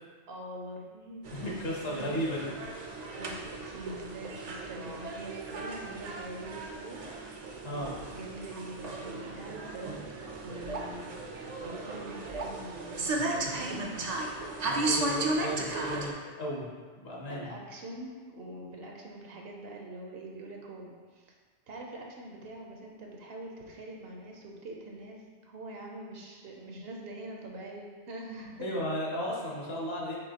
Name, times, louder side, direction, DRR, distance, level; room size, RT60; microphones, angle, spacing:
voice 1, 0.3-1.3 1.9-2.1 3.1-7.8 8.1-10.0 10.4-14.1 14.6-15.0 17.3-21.3 21.7-28.7, right 1 dB, 65° right, 0 dB, 0.9 m, -44 dB
sound 1, 1.2-16.1, right 2 dB, 50° right, 0.5 m, -35 dB
voice 2, 1.3-2.4 7.6-7.9 14.6-16.7 17.0-17.5 28.6-30.2, equal, 65° left, -3 dB, 1.2 m, -34 dB
6.9 x 2.7 x 2.8 m, 1.5 s
omnidirectional pair, 1.1 m